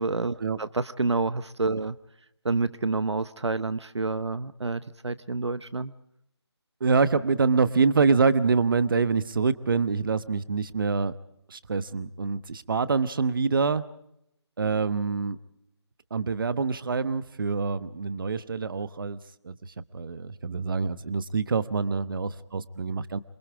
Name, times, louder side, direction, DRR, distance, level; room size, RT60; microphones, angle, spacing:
voice 1, 0.0-2.0 2.4-5.9, right 3 dB, 75° right, 14 dB, 0.9 m, -28 dB
voice 2, 6.8-11.1 11.5-13.8 14.6-15.4 16.1-19.2 19.4-19.6 19.9-23.2, right 4 dB, 50° right, 14 dB, 1.1 m, -25 dB
27.5 x 22.5 x 4.8 m, 0.78 s
figure-of-eight pair, 155°, 15 cm